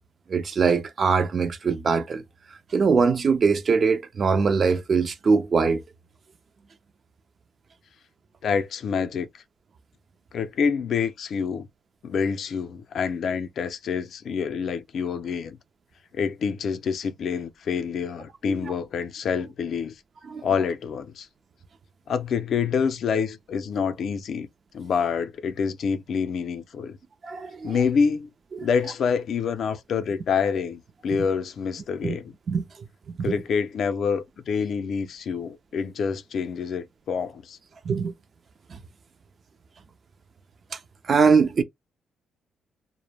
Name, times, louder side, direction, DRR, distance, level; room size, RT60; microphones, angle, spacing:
voice 1, 0.3-2.2 2.7-5.8 20.3-20.4 27.2-27.7 32.0-32.2 32.5-32.6 33.2-33.4 37.9-38.1 38.7-38.8 41.1-41.6, right 5 dB, 45° right, 0.4 m, -22 dB
voice 2, 8.4-9.4 10.3-11.7 12.0-15.6 16.1-20.0 20.4-21.3 22.1-24.5 24.7-27.0 27.6-28.3 28.6-32.3 33.2-37.6, left 6 dB, 60° left, 0.4 m, -27 dB
2.1 x 2.0 x 3.3 m
cardioid pair, 90°, 0 cm